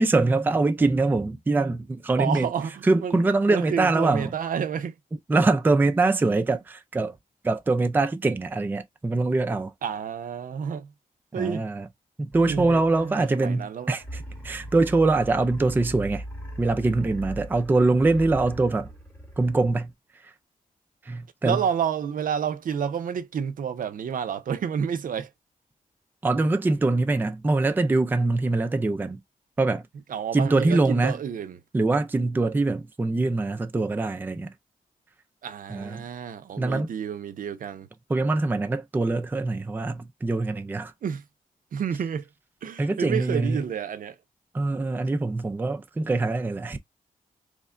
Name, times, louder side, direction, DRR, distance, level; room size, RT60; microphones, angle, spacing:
voice 1, 0.0-2.5 2.8-4.3 5.3-7.2 7.4-9.7 11.4-11.9 12.2-16.2 16.6-18.9 19.4-19.9 20.2-20.3 21.0-21.6 26.2-29.2 29.6-29.9 30.3-31.2 31.7-34.5 35.7-36.1 36.6-36.9 38.1-40.9 42.8-43.6 44.5-46.8, right 3 dB, 15° right, 0.3 m, -23 dB
voice 2, 2.2-3.1 3.5-4.9 9.8-10.9 11.3-11.7 12.4-14.0 21.4-25.3 30.1-31.6 35.4-37.9 41.0-41.2 41.7-42.3 42.6-44.2, right 7 dB, 70° right, 0.5 m, -30 dB
sound 1, 12.3-13.5 14.0-19.9, right 1 dB, 10° left, 0.9 m, -39 dB
3.2 x 2.2 x 3.6 m
wide cardioid pair, 155°, 15 cm